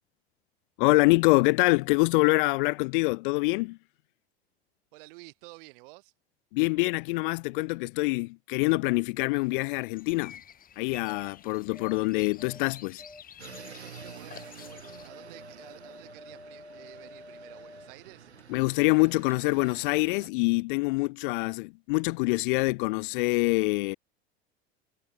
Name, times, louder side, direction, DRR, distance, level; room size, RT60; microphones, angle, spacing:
voice 1, 0.8-3.8 6.5-10.4 10.8-13.0 18.5-24.0, left 26 dB, 50° left, 0.9 m, -25 dB
voice 2, 4.9-6.1 14.0-18.3, right 25 dB, 55° right, 7.0 m, -51 dB
sound 1, 9.3-15.1, left 9 dB, 25° left, 1.7 m, -50 dB
sound 2, 10.7-18.9 19.2-19.4, left 2 dB, 5° left, 5.5 m, -50 dB
sound 3, 13.4-20.3, right 7 dB, 85° right, 0.8 m, -49 dB
figure-of-eight pair, 80°, 32 cm